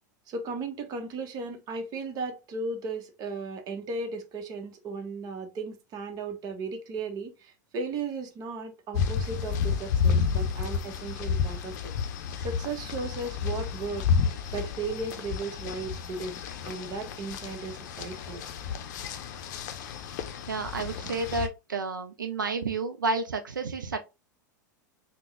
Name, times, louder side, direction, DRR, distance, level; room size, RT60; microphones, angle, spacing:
voice 1, 0.3-11.9 12.4-18.5, right 3 dB, 40° right, 0.9 m, -36 dB
sound 1, 8.9-21.5, left 6 dB, 60° left, 0.5 m, -31 dB
voice 2, 20.5-24.0, right 3 dB, 90° right, 0.4 m, -31 dB
3.5 x 2.1 x 3.2 m
hypercardioid pair, 95°, 10 cm